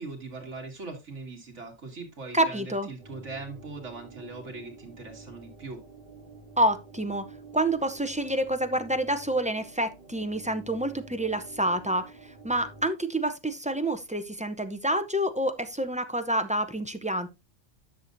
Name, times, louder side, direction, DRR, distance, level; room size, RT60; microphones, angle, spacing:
voice 1, 0.0-5.8, right 3 dB, 75° right, 2.5 m, -40 dB
voice 2, 2.3-2.9 6.6-7.2 7.5-17.3, right 1 dB, 10° right, 0.5 m, -28 dB
sound 1, 3.0-12.9, right 4 dB, 50° right, 2.3 m, -48 dB
10.5 x 6.7 x 2.6 m
omnidirectional pair, 1.3 m